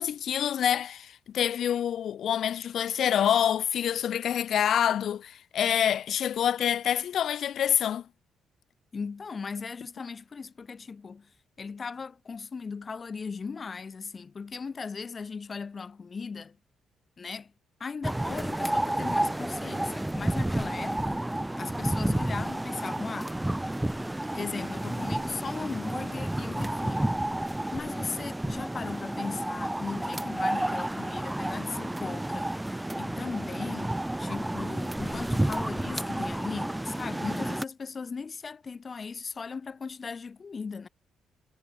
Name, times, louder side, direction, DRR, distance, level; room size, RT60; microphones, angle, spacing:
voice 1, 0.0-8.1, left 9 dB, 65° left, 1.4 m, -26 dB
voice 2, 8.9-11.3 11.6-16.6 17.2-17.5 17.8-21.2 21.6-23.4 24.3-27.0 27.7-40.9, left 5 dB, 35° left, 2.4 m, -38 dB
sound 1, 18.0-37.6, right 1 dB, 10° right, 0.5 m, -31 dB
cardioid pair, 90°, 0 cm